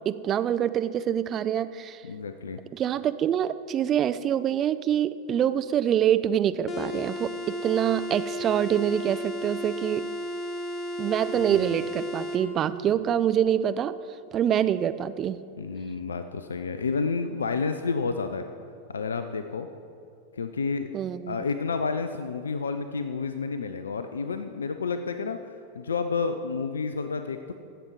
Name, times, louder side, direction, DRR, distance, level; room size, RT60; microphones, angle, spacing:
voice 1, 0.0-2.0 2.7-10.0 11.0-13.9 14.3-15.4 20.9-21.4, right 10 dB, 30° right, 13 dB, 0.4 m, -25 dB
voice 2, 2.0-2.6 11.4-11.7 15.6-18.4 18.9-19.7 20.3-20.9 21.3-25.4 25.8-27.5, left 4 dB, 70° left, 9 dB, 0.4 m, -30 dB
sound 1, 6.7-12.4, equal, 25° left, 1.2 m, -34 dB
16.0 x 6.9 x 4.7 m, 2.5 s
figure-of-eight pair, 90°, 0 cm